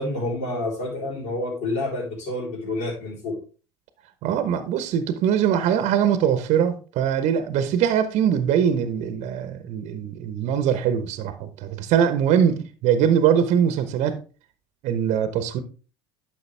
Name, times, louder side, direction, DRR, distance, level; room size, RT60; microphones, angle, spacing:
voice 1, 0.0-3.4, left 2 dB, 60° left, 4.5 m, -28 dB
voice 2, 4.2-14.2 14.8-15.6, right 8 dB, 55° right, 1.0 m, -22 dB
9.9 x 6.4 x 3.4 m
hypercardioid pair, 75°, 14 cm